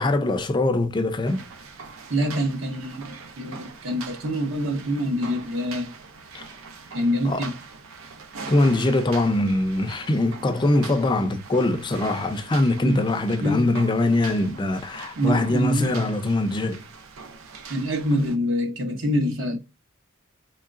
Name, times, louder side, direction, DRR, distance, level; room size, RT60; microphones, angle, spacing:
voice 1, 0.0-1.5 6.3-6.5 7.2-7.5 8.5-16.8, left 2 dB, 20° left, 0.4 m, -22 dB
sound 1, 1.3-18.4, right 4 dB, 85° right, 0.6 m, -42 dB
voice 2, 2.1-5.9 6.9-7.6 12.8-13.1 13.4-13.7 15.2-16.0 17.7-19.6, equal, 65° right, 0.9 m, -25 dB
3.7 x 3.1 x 2.4 m
head